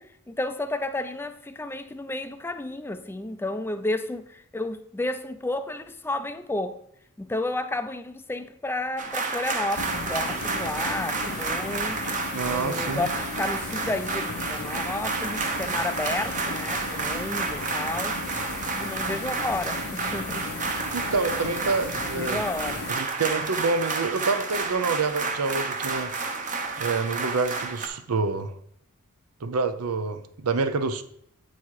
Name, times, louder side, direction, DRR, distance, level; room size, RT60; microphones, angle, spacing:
voice 1, 0.0-6.8 7.2-12.0 12.5-18.2 18.7-20.5 22.0-22.8, left 2 dB, 10° left, 0.4 m, -32 dB
sound 1, 9.0-27.9, right 4 dB, 35° right, 0.8 m, -30 dB
sound 2, 9.7-22.9, left 4 dB, 80° left, 0.7 m, -36 dB
voice 2, 12.3-13.1 20.9-22.4 22.9-26.1 26.8-28.5 29.4-31.0, right 4 dB, 85° right, 0.6 m, -27 dB
8.4 x 4.1 x 4.7 m
head